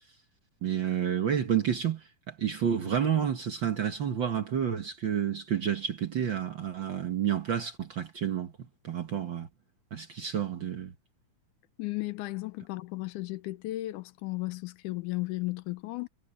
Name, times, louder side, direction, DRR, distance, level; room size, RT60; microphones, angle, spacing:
voice 1, 0.6-8.5 8.8-9.5 9.9-10.9, right 9 dB, 60° right, 1.2 m, -30 dB
voice 2, 11.8-16.1, left 20 dB, 80° left, 2.1 m, -35 dB
omnidirectional pair, 3.8 m